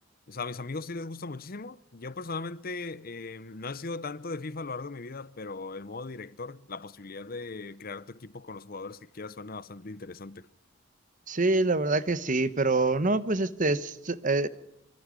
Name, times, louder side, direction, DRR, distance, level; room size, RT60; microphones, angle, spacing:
voice 1, 0.3-10.5, left 3 dB, 45° left, 0.8 m, -38 dB
voice 2, 11.3-14.5, right 2 dB, 40° right, 1.1 m, -26 dB
26.0 x 23.5 x 5.2 m
head